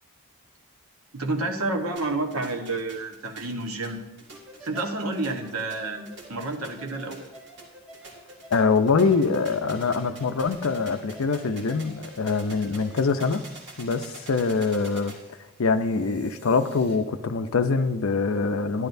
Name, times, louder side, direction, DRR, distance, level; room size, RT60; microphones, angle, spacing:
voice 1, 1.1-4.0 4.6-7.2, right 2 dB, 80° right, 1.1 m, -30 dB
sound 1, 2.0-17.0, right 2 dB, 55° right, 1.8 m, -47 dB
sound 2, 4.3-13.1, equal, 5° right, 1.7 m, -48 dB
voice 2, 8.5-13.4 13.8-15.1 15.6-18.9, left 4 dB, 70° left, 0.6 m, -24 dB
12.0 x 11.0 x 2.7 m
head